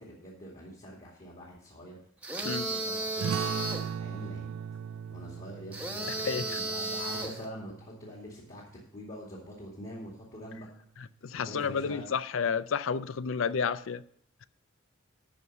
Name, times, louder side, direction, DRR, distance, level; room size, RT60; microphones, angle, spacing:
voice 1, 0.0-2.0 2.4-3.4 4.0-4.5 5.1-10.7 11.3-12.1, equal, 40° left, 2.3 m, -45 dB
sound 1, 2.2-3.9 5.7-7.4, right 2 dB, 5° right, 1.0 m, -34 dB
sound 2, 3.2-8.4, right 7 dB, 75° right, 0.3 m, -38 dB
voice 2, 6.1-6.6 11.2-14.0, left 6 dB, 70° left, 0.4 m, -31 dB
12.5 x 4.7 x 6.6 m
head